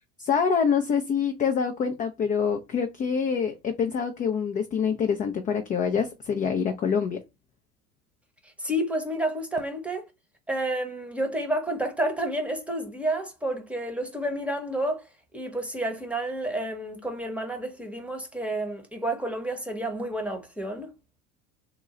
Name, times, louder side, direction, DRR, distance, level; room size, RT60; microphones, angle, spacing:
voice 1, 0.2-7.2, left 6 dB, 20° left, 0.4 m, -26 dB
voice 2, 8.6-10.1 10.5-15.0 15.3-20.9, right 1 dB, 5° right, 0.8 m, -30 dB
3.8 x 2.2 x 2.9 m
hypercardioid pair, 80°, 44 cm